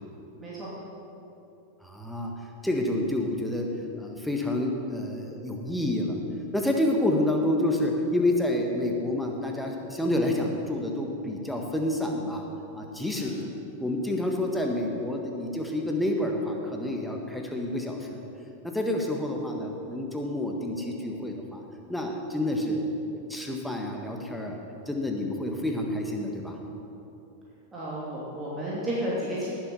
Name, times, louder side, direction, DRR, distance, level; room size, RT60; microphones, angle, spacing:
voice 1, 1.8-2.3 2.6-3.7 4.0-6.2 6.5-12.4 12.7-13.3 13.8-18.2 18.6-21.6 21.9-22.8 23.1-24.6 24.9-26.6, left 1 dB, ahead, 1 dB, 1.6 m, -28 dB
voice 2, 27.7-29.5, right 1 dB, 20° right, -7 dB, 2.7 m, -32 dB
18.5 x 7.4 x 5.5 m, 3.0 s
figure-of-eight pair, 90°, 0 cm